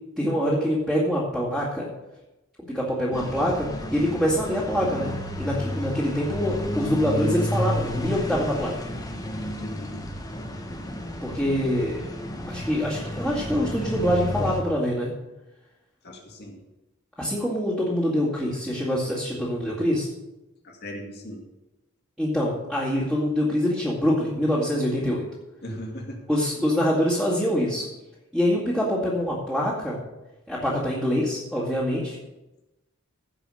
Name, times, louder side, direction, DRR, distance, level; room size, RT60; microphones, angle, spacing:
voice 1, 0.2-1.9 2.7-8.7 11.2-12.0 12.5-15.1 17.2-20.1 22.2-25.2 26.3-27.8 28.3-30.0 30.5-32.2, equal, 5° right, -9 dB, 2.3 m, -25 dB
sound 1, 3.1-14.6, left 1 dB, 15° left, 1.3 m, -32 dB
voice 2, 9.6-10.0 16.0-16.6 20.6-21.4 25.6-26.2, equal, 50° left, 1 dB, 2.2 m, -37 dB
16.0 x 5.5 x 6.5 m, 1.0 s
head